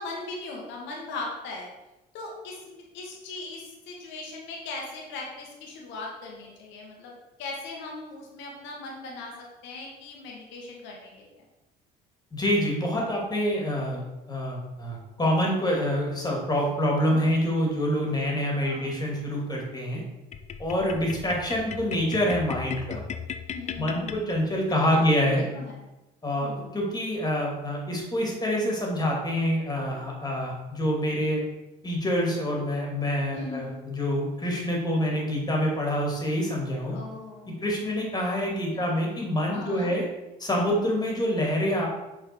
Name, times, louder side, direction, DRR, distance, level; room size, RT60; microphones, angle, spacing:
voice 1, 0.0-1.7 2.1-7.1 7.4-9.3 9.6-11.4 17.1-17.2 18.6-18.9 23.5-24.3 24.8-25.9 26.4-26.7 33.3-33.8 36.9-37.6 38.7-38.9 39.5-39.9, left 3 dB, 75° left, -1 dB, 1.7 m, -39 dB
voice 2, 12.3-20.0 20.6-23.0 23.8-25.4 26.2-31.4 31.8-37.0 37.6-40.0 40.4-41.9, equal, 20° left, -1 dB, 2.5 m, -26 dB
sound 1, 20.3-24.8, left 7 dB, 35° left, 0.5 m, -38 dB
6.6 x 4.1 x 4.5 m, 0.98 s
supercardioid pair, 85°, 20 cm